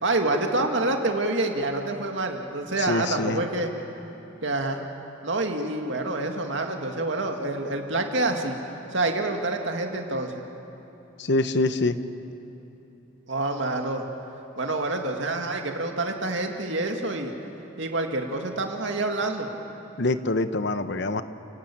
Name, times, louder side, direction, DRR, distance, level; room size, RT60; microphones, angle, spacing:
voice 1, 0.0-3.7 4.4-4.8 5.2-8.6 8.9-10.4 13.3-14.0 14.6-17.3 17.8-19.5, right 2 dB, 70° right, 3 dB, 2.2 m, -27 dB
voice 2, 2.8-3.4 11.2-12.0 20.0-21.2, left 2 dB, 60° left, 11 dB, 0.9 m, -25 dB
30.0 x 17.5 x 8.7 m, 3.0 s
head